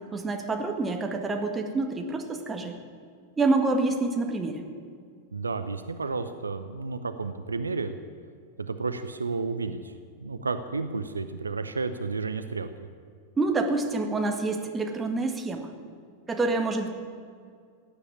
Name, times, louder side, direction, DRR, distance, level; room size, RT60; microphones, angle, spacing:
voice 1, 0.0-2.7 3.4-4.6 13.4-15.7 16.3-16.9, right 3 dB, 15° right, 4 dB, 1.9 m, -27 dB
voice 2, 5.3-7.9 8.7-12.7, right 4 dB, 75° right, 10 dB, 0.8 m, -32 dB
16.5 x 10.0 x 8.7 m, 2.2 s
figure-of-eight pair, 90°, 0 cm